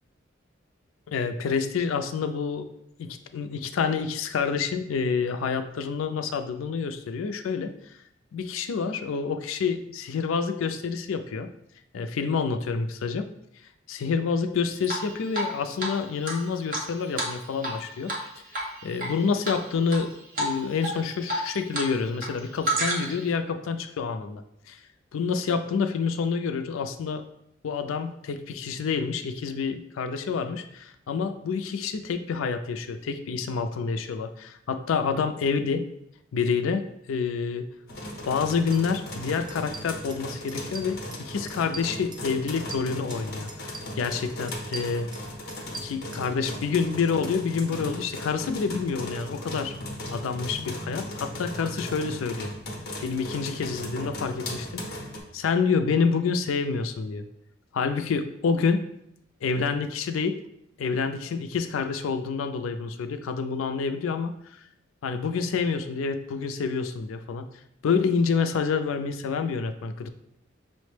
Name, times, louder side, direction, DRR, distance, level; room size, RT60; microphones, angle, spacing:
voice 1, 1.1-2.7 3.0-8.0 8.3-11.5 11.9-13.3 13.9-18.1 18.5-20.1 20.4-24.8 25.1-27.2 27.6-35.8 36.3-37.7 38.3-45.1 45.7-49.7 50.1-52.5 53.0-55.0 55.3-57.2 57.7-58.8 59.4-60.4 60.8-64.3 65.0-67.5 67.8-70.1, left 5 dB, 85° left, 8 dB, 0.4 m, -28 dB
Drip, 14.8-15.5 15.8-15.9 16.2-17.8 18.1-18.3 18.5-19.1 19.4-20.0 20.4-20.5 20.8-21.9 22.1-23.3, right 1 dB, 45° right, 0.9 m, -29 dB
sound 1, 37.9-55.2, left 1 dB, 55° left, 0.8 m, -37 dB
sound 2, 38.7-38.8 39.1-39.2 39.5-40.2 40.5-41.2 41.5-43.2 43.5-44.2 44.5-46.6, right 3 dB, 25° right, 0.3 m, -42 dB
5.6 x 2.1 x 3.1 m, 0.76 s
head